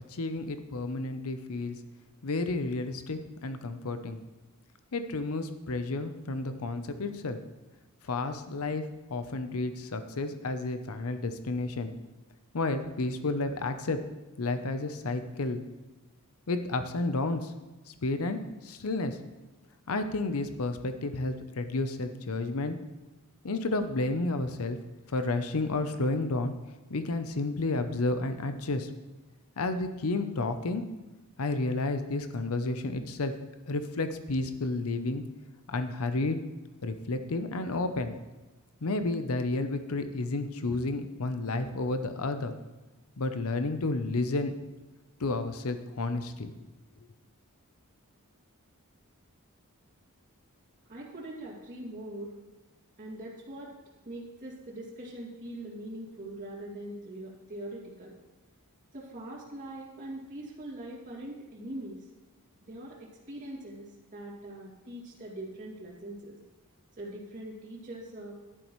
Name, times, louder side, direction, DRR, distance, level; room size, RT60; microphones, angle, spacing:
voice 1, 0.1-1.8 2.2-4.2 4.9-7.4 8.0-8.8 9.1-11.9 12.5-14.0 14.4-15.6 16.5-17.5 17.9-19.2 19.9-22.8 23.4-24.8 25.1-26.5 26.9-28.9 29.6-30.8 31.4-33.3 33.7-35.2 35.7-36.4 36.8-38.1 38.8-42.5 43.2-44.5 45.2-46.5, left 2 dB, 70° left, 9 dB, 0.7 m, -31 dB
voice 2, 50.9-52.3 53.0-53.7 54.0-58.1 58.9-62.0 62.7-66.4 67.0-68.4, right 1 dB, 35° right, -8 dB, 2.4 m, -42 dB
11.5 x 10.5 x 3.1 m, 1.1 s
head